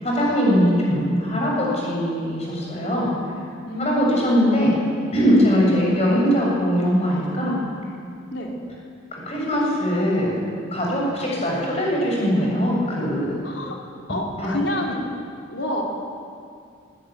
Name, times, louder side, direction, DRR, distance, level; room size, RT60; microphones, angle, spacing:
voice 1, 0.0-3.1 3.8-4.7 5.1-7.6 9.1-10.3 10.7-13.4 14.4-14.5, equal, 35° left, -3 dB, 7.1 m, -21 dB
voice 2, 3.7-4.6 8.3-8.5 13.4-13.8 14.1-15.0 15.5-15.8, left 1 dB, 70° left, 0 dB, 4.2 m, -27 dB
25.5 x 16.0 x 9.5 m, 2.3 s
head